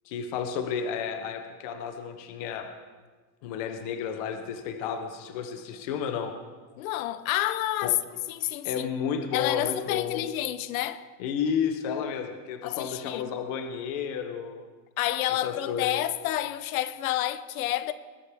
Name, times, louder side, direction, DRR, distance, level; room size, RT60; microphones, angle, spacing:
voice 1, 0.1-2.7 3.4-6.3 7.8-7.9 8.6-10.2 11.2-14.6 15.4-16.0, left 7 dB, 25° left, 0.4 m, -32 dB
voice 2, 6.8-8.0 8.3-8.9 9.3-11.1 12.6-13.2 15.0-17.9, left 14 dB, 60° left, 0.6 m, -29 dB
20.0 x 10.0 x 3.3 m
supercardioid pair, 175°, 50 cm